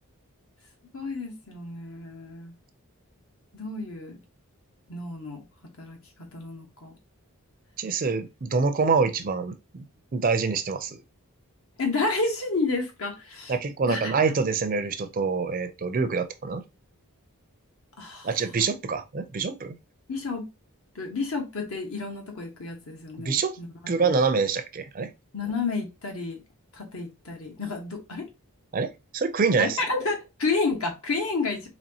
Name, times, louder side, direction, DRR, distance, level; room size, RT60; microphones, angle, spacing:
voice 1, 0.9-2.5 3.5-4.2 4.9-5.4 5.8-6.0 6.3-6.9 11.8-13.5 13.8-14.1 18.0-18.3 20.1-20.5 20.9-24.1 25.3-26.4 26.7-28.2 29.6-31.7, left 3 dB, 70° left, 1.1 m, -30 dB
voice 2, 7.8-9.9 10.1-11.0 13.5-16.6 18.2-19.8 23.2-23.6 23.9-25.1 28.7-29.8, right 5 dB, 40° right, 0.4 m, -26 dB
4.1 x 2.9 x 2.8 m
head